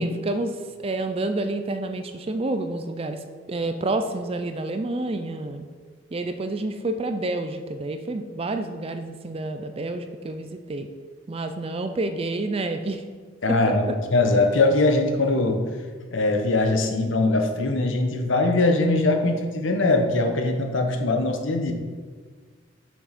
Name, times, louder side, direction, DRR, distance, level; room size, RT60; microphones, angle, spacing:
voice 1, 0.0-5.7 6.1-10.9 11.3-13.0 13.5-13.6, right 2 dB, 30° right, 8 dB, 0.4 m, -29 dB
voice 2, 13.4-15.6 16.1-21.7, left 2 dB, 65° left, 4 dB, 0.9 m, -21 dB
7.0 x 5.9 x 4.2 m, 1.5 s
head